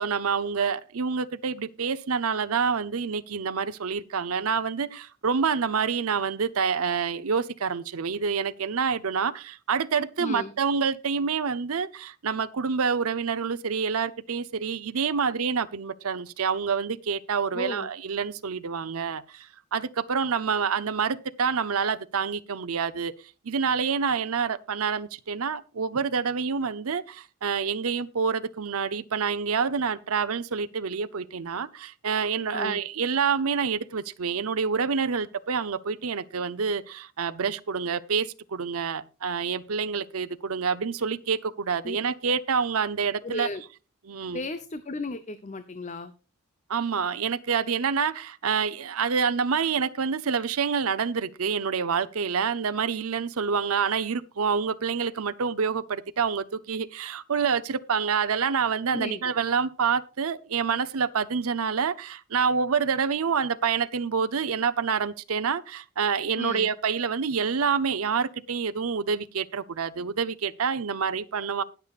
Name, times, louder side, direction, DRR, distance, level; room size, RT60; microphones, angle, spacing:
voice 1, 0.0-23.1 23.4-43.5 44.1-44.4 46.7-71.6, right 6 dB, 85° right, 0.7 m, -27 dB
voice 2, 10.2-10.5 17.5-17.9 32.5-32.8 41.8-42.0 43.2-43.6 44.3-46.1 58.9-59.4 66.4-66.7, left 2 dB, 35° left, 0.7 m, -34 dB
20.0 x 6.8 x 2.4 m
head